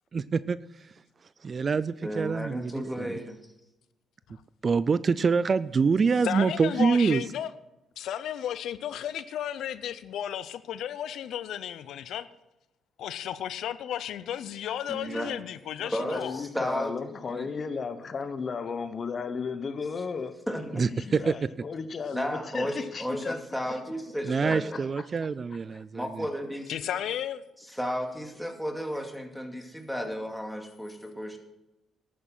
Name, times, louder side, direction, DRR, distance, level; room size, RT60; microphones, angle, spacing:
voice 1, 0.1-0.6 1.4-3.2 4.6-7.2 20.7-21.3 24.3-26.3, right 5 dB, 40° right, 0.4 m, -26 dB
voice 2, 2.0-3.4 14.9-15.3 15.9-16.9 17.3-17.5 20.5-20.8 22.1-24.8 25.9-26.7 27.7-31.4, equal, ahead, 2.3 m, -33 dB
voice 3, 6.2-7.5 8.0-12.3 13.0-16.4 26.7-27.4, left 10 dB, 75° left, 0.6 m, -33 dB
voice 4, 15.8-23.4 24.5-24.8, left 5 dB, 45° left, 1.0 m, -35 dB
12.0 x 9.4 x 6.1 m
cardioid pair, 90°, 0 cm